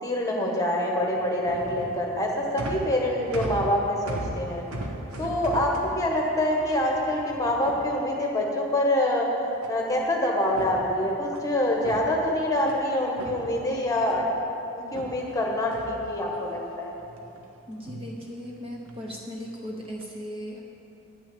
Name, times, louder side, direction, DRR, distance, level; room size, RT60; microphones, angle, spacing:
voice 1, 0.0-4.6 5.2-5.7 6.0-9.3 9.7-14.3 14.7-16.9, left 1 dB, 15° left, -1 dB, 1.4 m, -26 dB
sound 1, 1.0-8.5 9.6-10.1 10.4-12.8 13.2-14.4 14.9-16.6 17.0-17.5 17.7-18.1 18.9-19.2 19.7-20.0, right 1 dB, 75° right, 1.2 m, -39 dB
voice 2, 17.7-20.6, equal, 25° right, -1 dB, 0.8 m, -37 dB
10.5 x 6.2 x 8.4 m, 2.8 s
head